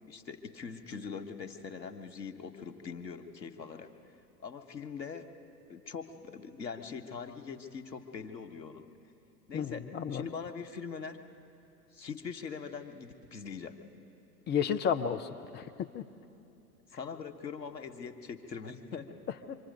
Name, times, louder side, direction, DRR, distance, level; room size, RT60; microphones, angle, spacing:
voice 1, 0.1-3.9 4.4-5.3 5.7-8.9 9.5-11.2 11.9-13.8 16.9-19.1, left 6 dB, 90° left, 7 dB, 1.4 m, -42 dB
voice 2, 9.5-10.2 14.5-15.6 15.9-16.0 19.5-19.6, left 7 dB, 20° left, 9 dB, 0.8 m, -32 dB
26.5 x 25.0 x 5.3 m, 2.8 s
hypercardioid pair, 105°, 49 cm